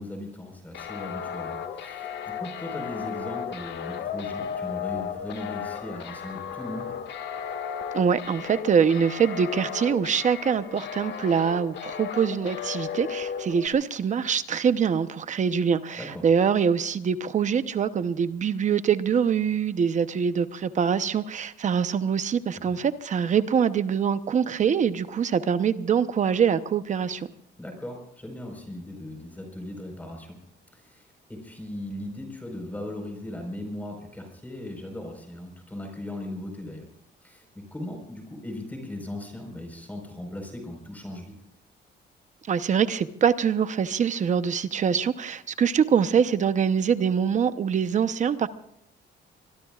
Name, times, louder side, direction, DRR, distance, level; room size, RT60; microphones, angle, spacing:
voice 1, 0.0-6.9 16.0-16.3 22.7-22.8 27.6-30.4 30.7-36.9 37.2-41.3, left 1 dB, 10° left, 4.7 m, -38 dB
sound 1, 0.7-13.7, left 8 dB, 70° left, 1.9 m, -35 dB
voice 2, 7.9-27.3 42.5-48.5, right 7 dB, 40° right, 0.9 m, -24 dB
24.0 x 23.0 x 2.5 m
cardioid pair, 150°, 19 cm